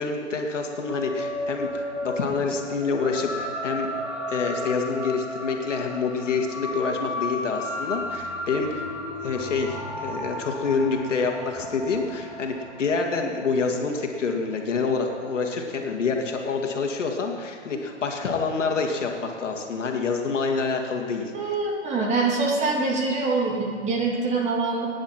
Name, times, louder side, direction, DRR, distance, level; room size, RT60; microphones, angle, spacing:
voice 1, 0.0-3.9 4.3-8.8 9.2-21.3, left 4 dB, 75° left, 2 dB, 2.3 m, -27 dB
sound 1, 0.6-15.4, left 1 dB, 5° right, 2.7 m, -34 dB
voice 2, 21.3-24.9, right 3 dB, 20° right, -1 dB, 2.4 m, -24 dB
22.5 x 10.0 x 4.5 m, 2.3 s
hypercardioid pair, 130°, 37 cm